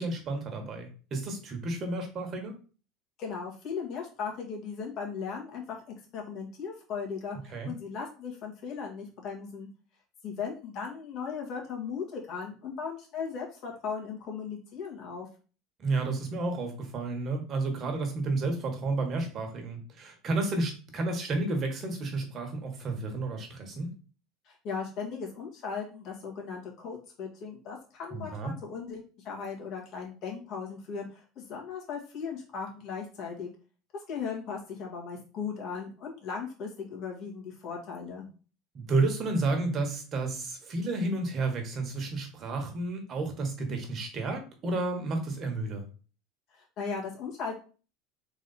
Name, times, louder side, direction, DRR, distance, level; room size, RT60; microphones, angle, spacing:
voice 1, 0.0-2.5 7.5-7.7 15.8-23.9 28.1-28.5 38.7-45.8, right 3 dB, 40° right, 4 dB, 1.3 m, -31 dB
voice 2, 3.2-5.8 6.1-9.7 10.2-15.3 24.4-33.5 33.9-38.3 46.5-47.6, left 5 dB, 50° left, -1 dB, 1.8 m, -37 dB
3.9 x 3.0 x 4.1 m, 0.36 s
supercardioid pair, 125°, 0 cm